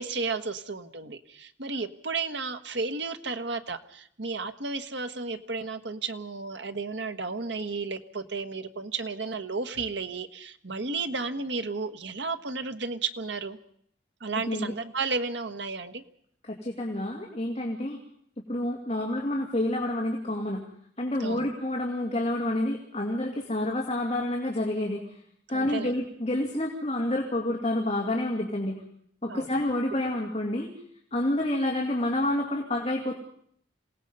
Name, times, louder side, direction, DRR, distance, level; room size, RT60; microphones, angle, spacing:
voice 1, 0.0-13.6 14.2-16.0 21.2-21.5 25.5-25.9 29.3-29.5, right 4 dB, 80° right, 9 dB, 1.3 m, -33 dB
voice 2, 14.3-14.7 16.4-18.0 18.5-20.6 21.0-25.2 25.5-28.8 29.2-30.7 31.1-33.1, left 1 dB, 35° left, -1 dB, 2.5 m, -28 dB
27.5 x 18.0 x 5.5 m, 0.66 s
head